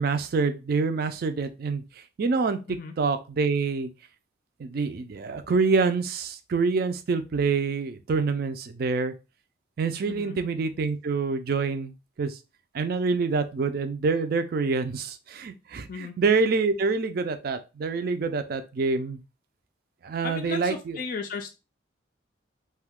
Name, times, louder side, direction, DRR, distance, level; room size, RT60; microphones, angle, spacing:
voice 1, 0.0-1.8 2.2-2.6 3.0-3.9 4.6-9.1 9.8-12.4 12.7-19.2 20.0-21.0, right 4 dB, 50° right, 9 dB, 0.4 m, -26 dB
voice 2, 20.2-21.5, left 5 dB, 45° left, 4 dB, 0.3 m, -35 dB
2.7 x 2.3 x 3.5 m, 0.29 s
head